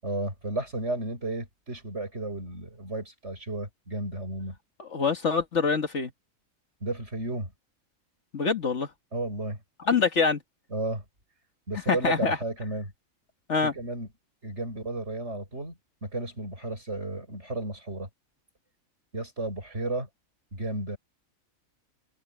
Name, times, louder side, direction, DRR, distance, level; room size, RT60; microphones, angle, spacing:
voice 1, 0.0-4.6 6.8-7.5 9.1-9.6 10.7-11.0 11.7-12.9 13.6-14.1 14.4-18.1 19.1-20.1 20.5-21.0, right 2 dB, 55° right, 7.0 m, -33 dB
voice 2, 4.8-6.1 8.3-8.9 9.8-10.4 11.9-12.4 13.5-13.7, left 5 dB, 55° left, 1.7 m, -25 dB
omnidirectional pair, 1.5 m